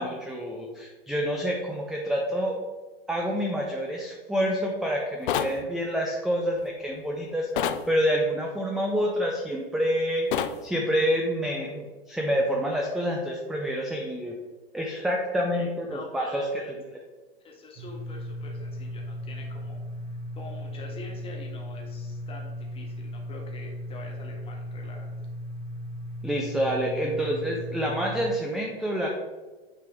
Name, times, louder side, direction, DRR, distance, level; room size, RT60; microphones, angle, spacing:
voice 1, 0.0-2.6 3.1-10.3 10.6-14.4 14.7-16.5 26.2-29.1, equal, ahead, 0 dB, 0.4 m, -27 dB
sound 1, 5.3-5.6 7.6-7.8 10.3-10.6, left 9 dB, 55° left, 0.5 m, -26 dB
voice 2, 15.5-16.7 17.4-19.8 20.1-25.1, left 3 dB, 20° left, -1 dB, 1.5 m, -45 dB
sound 2, 17.8-28.3, equal, 30° right, 1.3 m, -37 dB
9.1 x 3.4 x 3.5 m, 1.3 s
figure-of-eight pair, 100°, 31 cm